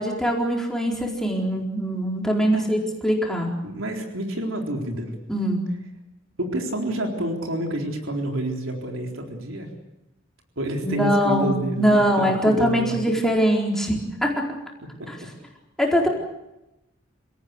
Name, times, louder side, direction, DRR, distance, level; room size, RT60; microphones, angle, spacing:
voice 1, 0.0-3.5 5.3-5.6 10.8-14.4 15.1-15.2 15.8-16.1, equal, 5° left, -1 dB, 4.3 m, -22 dB
voice 2, 3.6-5.1 6.4-9.7 10.6-13.0 15.0-15.1, right 1 dB, 85° right, 2 dB, 4.0 m, -28 dB
27.5 x 18.0 x 8.2 m, 0.94 s
head